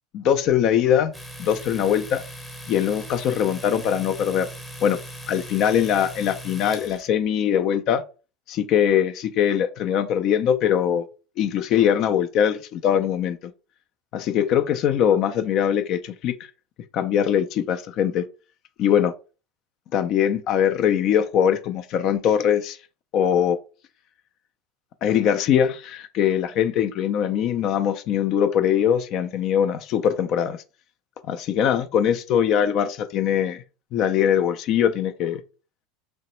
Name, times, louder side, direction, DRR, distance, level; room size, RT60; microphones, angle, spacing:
voice 1, 0.1-1.1 1.4-2.2 2.7-4.5 4.8-5.0 5.3-8.0 8.5-11.1 11.4-13.4 14.1-16.5 16.9-18.3 18.8-19.1 19.9-22.8 23.1-23.6 25.0-30.6 31.3-33.6 33.9-35.4, left 9 dB, 50° left, 0.3 m, -22 dB
Domestic sounds home sounds, 1.1-7.1, right 1 dB, 5° left, 0.8 m, -39 dB
2.9 x 2.0 x 3.0 m
hypercardioid pair, 90°, 0 cm